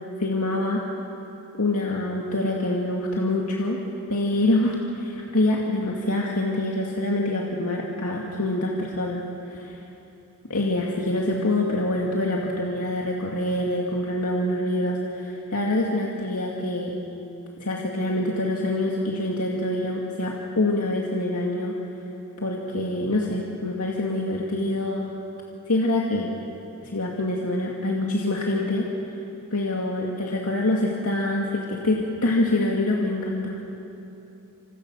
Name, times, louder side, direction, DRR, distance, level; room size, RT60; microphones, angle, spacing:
voice 1, 0.2-0.8 1.6-3.8 4.1-9.8 10.5-17.0 17.6-21.8 22.4-25.1 25.7-26.3 26.8-28.9 29.5-33.6, left 1 dB, 85° left, -2 dB, 2.3 m, -25 dB
27.5 x 27.0 x 6.4 m, 3.0 s
head